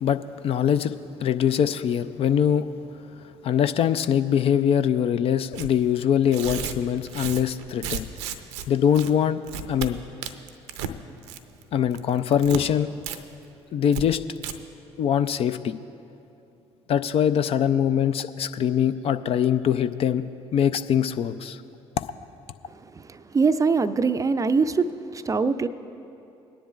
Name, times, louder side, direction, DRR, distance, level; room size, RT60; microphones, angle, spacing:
voice 1, 0.0-0.9 1.2-2.7 3.4-8.1 8.7-9.4 9.7-10.0 11.7-12.9 13.7-14.2 15.0-15.7 16.9-20.2 20.5-21.6, left 9 dB, 45° left, 0.4 m, -23 dB
Tearing, 5.5-5.7 6.2-8.7 8.9-9.1 9.4-9.9 10.2-10.9 11.2-11.6 11.9-12.6 13.0-13.2 13.4-13.5 13.9-14.0 14.4-14.5, right 8 dB, 70° right, 0.6 m, -33 dB
voice 2, 22.7-25.7, right 4 dB, 25° right, 0.5 m, -23 dB
22.5 x 10.0 x 2.4 m
figure-of-eight pair, 55°, 14 cm